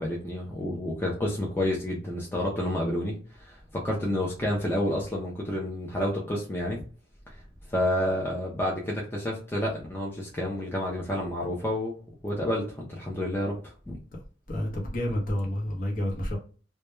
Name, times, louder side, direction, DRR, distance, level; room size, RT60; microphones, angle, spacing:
voice 1, 0.0-6.8 7.7-14.0, left 1 dB, 10° left, 0.4 m, -30 dB
voice 2, 14.5-16.4, left 1 dB, 45° left, 0.8 m, -29 dB
2.1 x 2.1 x 2.9 m
head